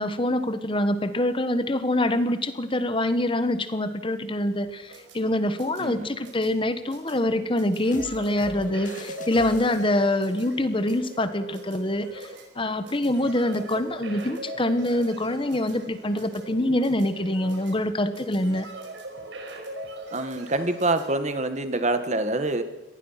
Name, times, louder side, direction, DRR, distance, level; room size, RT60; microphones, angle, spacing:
voice 1, 0.0-12.3 12.5-18.7, left 1 dB, 30° left, 11 dB, 1.2 m, -25 dB
sound 1, 4.6-21.1, right 2 dB, 80° right, 5.0 m, -41 dB
voice 2, 5.8-6.1 20.1-22.6, right 2 dB, 40° right, 9 dB, 1.7 m, -26 dB
sound 2, 7.9-10.2, left 2 dB, 45° left, 1.9 m, -44 dB
25.0 x 19.0 x 5.8 m, 1.1 s
head